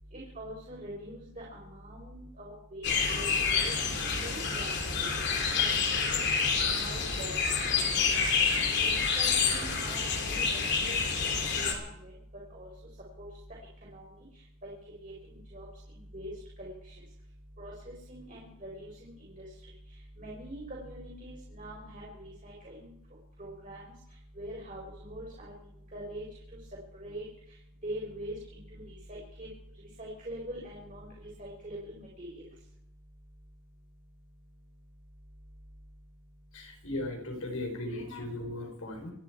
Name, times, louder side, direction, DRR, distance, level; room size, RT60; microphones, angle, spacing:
voice 1, 0.1-3.7 4.2-5.1 5.5-5.8 6.0-6.2 6.5-7.4 7.7-8.2 8.8-11.0 11.2-12.1 12.5-12.7 13.8-14.0 14.6-14.7 15.0-16.3 16.6-16.9 17.6-19.3 20.2-22.9 23.4-23.8 24.4-25.5 25.9-26.2 26.9-27.3 27.8-29.5 30.0-32.4, right 1 dB, 35° right, -3 dB, 4.6 m, -43 dB
sound 1, 2.8-11.7, left 5 dB, 50° left, 2.8 m, -28 dB
voice 2, 36.5-39.1, left 1 dB, 75° left, 3 dB, 4.2 m, -37 dB
26.5 x 10.5 x 4.6 m, 0.78 s
head